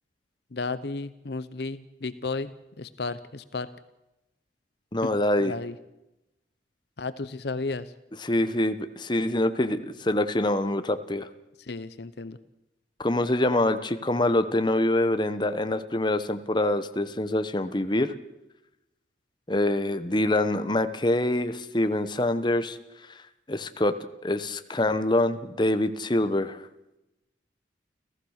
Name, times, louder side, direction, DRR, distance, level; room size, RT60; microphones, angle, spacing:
voice 1, 0.5-3.7 5.0-5.1 5.4-5.8 7.0-7.9 11.6-12.4, left 3 dB, 60° left, 15 dB, 0.8 m, -33 dB
voice 2, 4.9-5.5 8.2-11.3 13.0-18.1 19.5-22.8 23.5-23.9 24.2-26.6, left 1 dB, 25° left, 10 dB, 1.0 m, -25 dB
30.0 x 15.0 x 6.5 m, 0.94 s
head